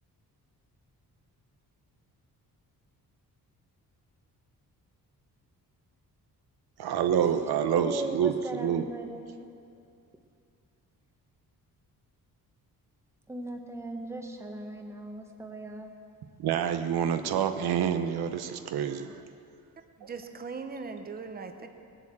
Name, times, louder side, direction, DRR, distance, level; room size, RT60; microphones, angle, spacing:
voice 1, 6.8-8.3 8.6-8.8 16.4-19.1, right 8 dB, 90° right, 8 dB, 0.9 m, -27 dB
voice 2, 7.8-9.3 13.3-15.9 19.1-19.3, right 1 dB, 5° right, 3 dB, 1.2 m, -38 dB
voice 3, 20.0-21.7, right 4 dB, 25° right, 6 dB, 0.9 m, -39 dB
19.5 x 8.1 x 7.5 m, 2.5 s
wide cardioid pair, 160°, 37 cm